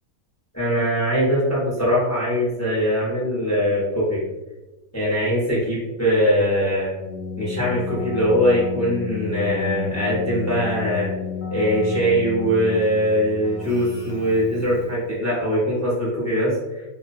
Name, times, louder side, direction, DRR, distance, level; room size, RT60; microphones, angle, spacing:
voice 1, 0.5-4.2 4.9-7.0 7.4-11.1 11.5-16.8, equal, 20° left, -8 dB, 0.5 m, -21 dB
Keyboard (musical), 7.0-15.1, left 6 dB, 80° left, 0.4 m, -32 dB
2.5 x 2.2 x 2.5 m, 1.0 s
omnidirectional pair, 1.5 m